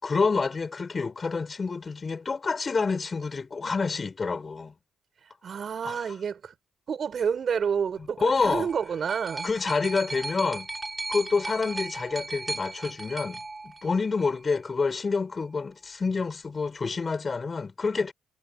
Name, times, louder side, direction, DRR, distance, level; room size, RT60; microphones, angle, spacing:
voice 1, 0.0-4.7 5.8-6.1 8.2-8.7 9.4-10.7 11.1-13.4 13.8-18.1, left 4 dB, 35° left, 5.4 m, -28 dB
voice 2, 5.4-6.6 6.9-9.5, right 7 dB, 50° right, 7.2 m, -29 dB
sound 1, 8.4-14.4 15.3-15.4, right 3 dB, 20° right, 7.0 m, -37 dB
cardioid pair, 90°, 0 cm